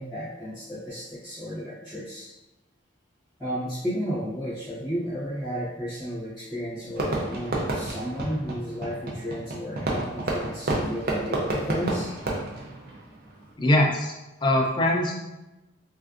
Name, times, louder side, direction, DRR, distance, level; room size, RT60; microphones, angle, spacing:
voice 1, 0.0-2.3 3.4-12.1, equal, 5° right, -12 dB, 0.8 m, -33 dB
Fireworks, 7.0-13.5, right 2 dB, 50° right, 0.5 m, -30 dB
voice 2, 13.6-14.1 14.4-15.1, left 1 dB, 25° left, -1 dB, 0.3 m, -22 dB
3.3 x 2.5 x 2.4 m, 1.0 s
head